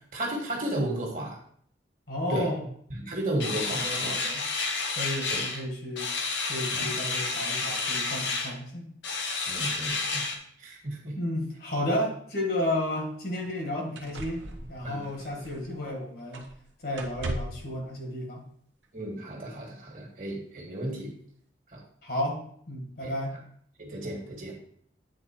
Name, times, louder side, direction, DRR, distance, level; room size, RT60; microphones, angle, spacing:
voice 1, 0.1-1.4 2.3-2.5 2.9-4.1 5.3-5.4 6.7-6.9 9.5-10.3 10.6-11.2 14.8-15.0 18.9-21.1 21.7-21.8 23.0-23.1 23.8-24.6, right 1 dB, 45° right, 0 dB, 1.7 m, -33 dB
voice 2, 2.1-2.6 3.7-4.4 5.0-6.1 6.5-8.9 11.2-14.4 14.7-16.5 16.8-18.5 22.0-22.4 22.7-23.4, left 1 dB, 55° left, 1 dB, 1.8 m, -32 dB
sound 1, 3.4-5.6 6.0-8.5 9.0-10.4, left 4 dB, 75° left, 1.1 m, -30 dB
sound 2, 12.7-12.8 13.4-13.6 14.0-15.9 16.3-16.6 16.9-17.7 18.8-18.9, right 1 dB, 90° right, 1.0 m, -38 dB
8.4 x 4.1 x 4.4 m, 0.63 s
head